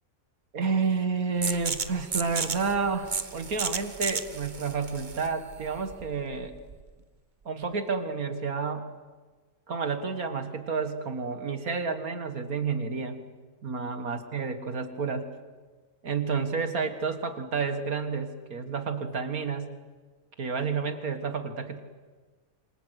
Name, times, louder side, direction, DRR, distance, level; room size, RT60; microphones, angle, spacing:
voice 1, 0.5-6.5 7.5-8.9 9.7-13.2 13.6-15.3 16.0-19.8 20.4-21.8, right 5 dB, 75° right, 8 dB, 2.2 m, -30 dB
sound 1, 1.4-6.9, right 4 dB, 35° right, 1.2 m, -34 dB
28.0 x 24.5 x 8.2 m, 1.4 s
omnidirectional pair, 1.5 m